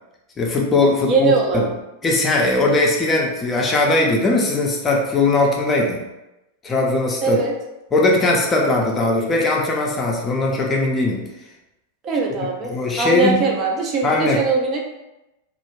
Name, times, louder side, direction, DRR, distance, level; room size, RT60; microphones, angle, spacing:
voice 1, 0.4-1.7 2.0-6.0 6.6-7.4 7.9-11.3 12.7-13.5 14.0-14.5, left 2 dB, 20° left, -2 dB, 0.5 m, -19 dB
voice 2, 1.0-1.7 7.2-7.5 12.0-14.8, right 4 dB, 30° right, 0 dB, 0.5 m, -21 dB
2.3 x 2.1 x 3.1 m, 0.94 s
figure-of-eight pair, 90°, 0 cm